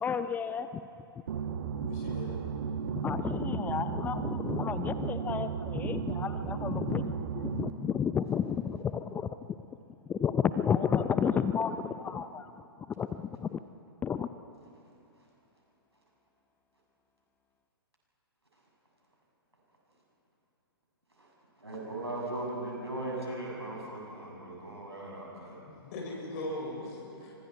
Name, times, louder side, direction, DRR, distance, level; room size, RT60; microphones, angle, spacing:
voice 1, 0.0-0.8 2.9-9.3 10.1-12.5 13.0-13.6 14.0-14.3, left 7 dB, 15° left, 12 dB, 0.5 m, -31 dB
sound 1, 1.3-7.7, right 7 dB, 55° right, 1.4 m, -34 dB
voice 2, 1.8-2.3 25.7-27.3, left 1 dB, 40° left, -2 dB, 5.8 m, -39 dB
voice 3, 21.6-25.6, right 2 dB, 90° right, -3 dB, 7.3 m, -38 dB
29.5 x 25.5 x 4.6 m, 2.9 s
figure-of-eight pair, 115°, 13 cm